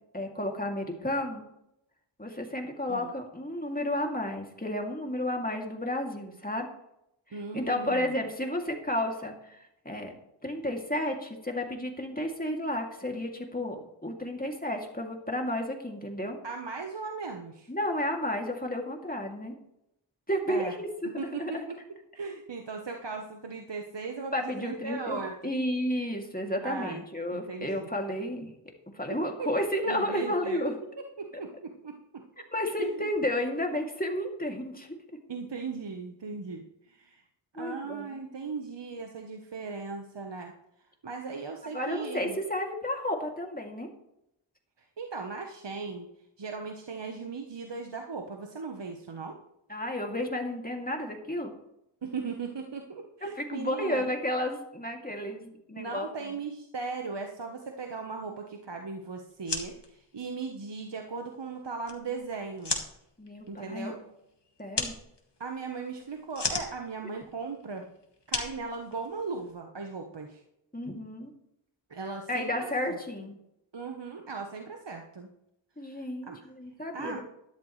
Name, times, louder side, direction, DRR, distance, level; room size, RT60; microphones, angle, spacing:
voice 1, 0.1-1.4 2.2-6.7 7.3-10.1 10.4-16.4 17.7-19.5 20.3-20.9 21.4-21.7 24.3-28.5 28.9-30.7 32.5-34.9 37.5-38.2 41.7-43.9 49.7-51.5 53.2-56.3 63.2-64.0 64.6-64.9 70.7-71.3 72.3-73.4 75.8-77.2, left 1 dB, 15° left, 1 dB, 2.6 m, -32 dB
voice 2, 7.3-8.1 16.4-17.7 20.5-20.7 21.2-21.8 22.1-25.3 26.6-27.0 27.3-27.9 29.1-29.5 29.8-32.2 32.8-33.1 35.3-37.2 37.5-40.5 41.0-42.4 44.8-46.1 46.4-49.4 52.0-54.0 55.7-62.8 63.5-64.0 65.4-67.9 68.3-70.4 71.9-73.0 73.7-75.3 75.9-76.5 76.9-77.2, right 4 dB, 55° right, 3 dB, 1.2 m, -38 dB
sound 1, 59.3-69.5, left 3 dB, 55° left, 2.0 m, -38 dB
13.0 x 12.0 x 3.3 m, 0.82 s
cardioid pair, 40°, 50 cm